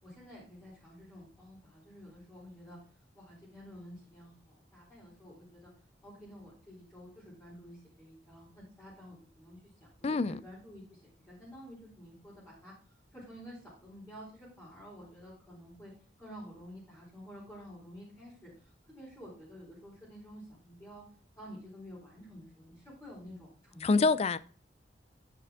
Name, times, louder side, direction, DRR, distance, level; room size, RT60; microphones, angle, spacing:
voice 1, 0.0-2.8 3.1-5.7 6.0-12.7 13.1-15.9 16.2-21.0 21.4-24.0, equal, 15° left, 3.9 m, -50 dB
voice 2, 10.0-10.4 23.8-24.4, left 3 dB, 35° left, 0.4 m, -26 dB
9.8 x 5.9 x 3.5 m
head